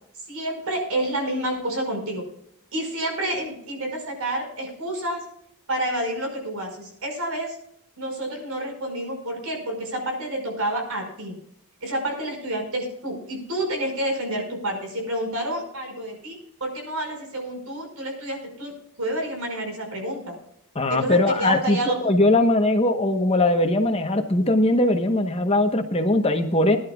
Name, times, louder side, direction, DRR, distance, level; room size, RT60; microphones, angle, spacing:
voice 1, 0.3-2.2 2.7-5.2 5.7-7.6 8.0-11.4 11.8-18.7 19.0-20.4 20.9-22.1, right 1 dB, 80° right, 3 dB, 5.3 m, -29 dB
voice 2, 20.7-26.8, left 1 dB, 25° left, 6 dB, 1.0 m, -20 dB
20.0 x 11.5 x 2.3 m, 0.70 s
head